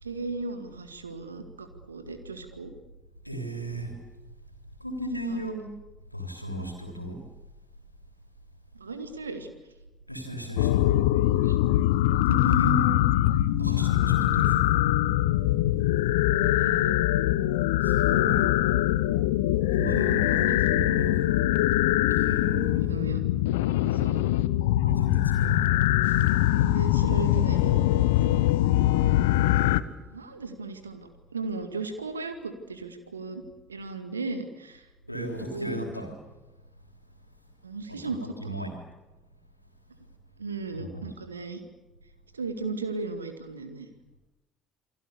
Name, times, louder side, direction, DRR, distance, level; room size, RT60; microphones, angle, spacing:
voice 1, 0.0-2.7 5.2-5.4 8.7-9.5 11.4-11.6 16.3-16.9 18.5-18.6 19.6-20.6 22.7-23.2 23.9-24.2 26.5-27.8 28.3-28.4 30.1-33.4 33.7-34.9 35.5-35.9 37.6-38.6 40.4-41.6 42.3-43.9, right 3 dB, 80° right, 8 dB, 2.2 m, -36 dB
voice 2, 3.2-4.0 4.8-5.7 6.1-7.2 10.1-10.9 12.3-13.1 13.6-14.8 17.8-18.5 19.7-21.3 22.1-23.0 24.8-26.5 35.1-36.1 37.9-38.0 38.4-38.7 40.7-41.0, equal, 90° left, 3 dB, 3.4 m, -34 dB
sound 1, 10.6-29.8, left 14 dB, 70° left, 0.9 m, -23 dB
Bowed string instrument, 27.5-30.6, left 6 dB, 40° left, 3.8 m, -45 dB
29.0 x 23.0 x 6.9 m, 1.1 s
figure-of-eight pair, 55°, 0 cm